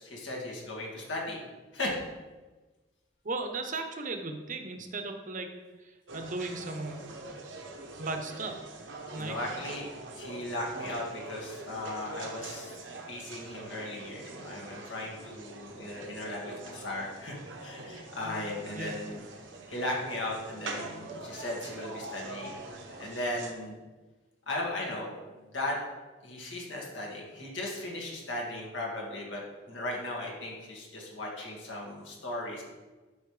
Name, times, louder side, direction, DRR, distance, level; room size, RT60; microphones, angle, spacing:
voice 1, 0.0-1.4 1.7-1.9 9.2-9.9 10.1-12.8 13.1-19.3 19.7-22.6 23.0-23.8 24.5-25.8 26.2-32.6, left 1 dB, 75° left, -3 dB, 2.0 m, -37 dB
voice 2, 3.2-5.5 6.1-7.1 8.0-8.6 9.1-9.3 18.2-18.4 18.7-18.9, right 3 dB, 45° right, 5 dB, 0.9 m, -36 dB
sound 1, 6.1-23.5, right 2 dB, 70° right, 1.0 m, -44 dB
12.0 x 5.4 x 3.3 m, 1.2 s
head